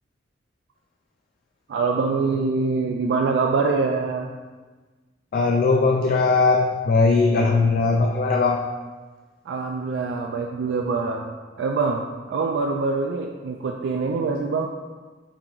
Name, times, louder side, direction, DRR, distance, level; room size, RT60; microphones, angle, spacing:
voice 1, 1.7-4.3 9.5-11.3 11.6-12.0 12.3-14.7, right 4 dB, 70° right, 2 dB, 0.3 m, -24 dB
voice 2, 5.3-8.6, left 3 dB, 50° left, 1 dB, 0.3 m, -19 dB
7.2 x 2.5 x 2.9 m, 1.3 s
head